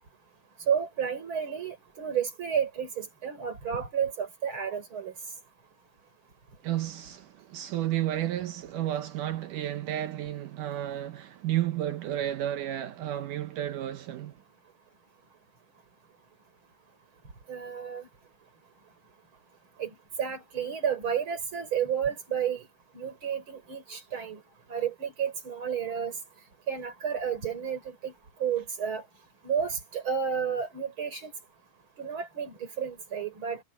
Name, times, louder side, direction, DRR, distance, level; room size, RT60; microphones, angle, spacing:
voice 1, 0.7-5.1 17.5-18.1 19.8-19.9 20.2-22.7 22.9-24.4 24.7-26.1 26.7-28.1 28.4-29.0 29.4-31.3 32.0-33.6, right 7 dB, 30° right, 5.2 m, -31 dB
voice 2, 6.6-14.4, right 12 dB, 75° right, 2.1 m, -32 dB
omnidirectional pair, 4.4 m